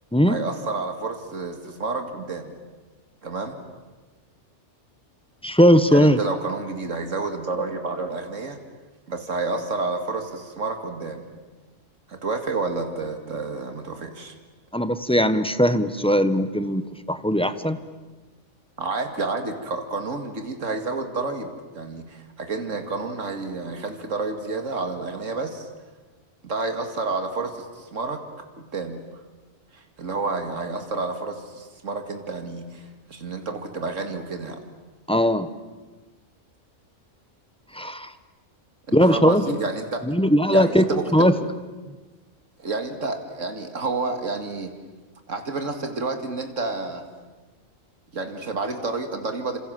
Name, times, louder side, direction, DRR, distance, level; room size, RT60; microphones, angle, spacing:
voice 1, 0.3-2.5 3.2-3.6 5.9-8.6 9.1-11.3 12.1-14.3 18.8-21.5 21.7-25.7 26.4-28.2 28.7-29.0 29.7-34.6 38.9-40.1 40.5-41.3 42.6-44.7 45.3-47.0 48.1-49.6, right 3 dB, 85° right, 5 dB, 2.5 m, -30 dB
voice 2, 5.4-6.2 14.7-17.8 35.1-35.5 37.7-38.1 38.9-39.4 40.1-41.3, equal, 5° left, 11 dB, 1.1 m, -19 dB
28.0 x 27.0 x 7.7 m, 1.3 s
omnidirectional pair, 1.3 m